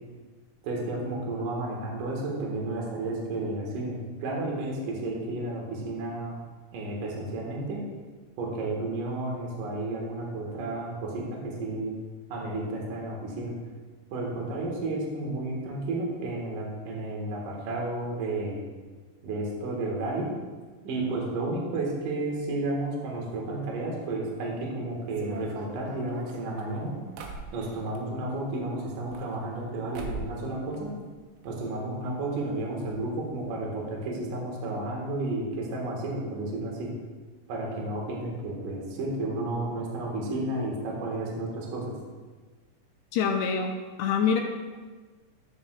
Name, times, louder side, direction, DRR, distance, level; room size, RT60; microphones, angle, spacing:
voice 1, 0.6-6.4 6.7-7.8 8.4-11.9 12.3-13.5 14.1-18.7 19.2-20.3 20.8-26.9 27.5-30.9 31.4-36.9 37.5-41.9, right 2 dB, 60° right, -2 dB, 2.5 m, -32 dB
sound 1, 25.1-28.0 28.9-29.7 29.9-30.4 30.7-31.5 31.8-31.9 32.1-32.2 32.9-33.0 33.3-33.4, right 4 dB, 85° right, 3.0 m, -42 dB
voice 2, 43.1-43.7 44.0-44.4, left 6 dB, 80° left, 2 dB, 2.5 m, -25 dB
13.0 x 7.3 x 2.3 m, 1.4 s
omnidirectional pair, 5.0 m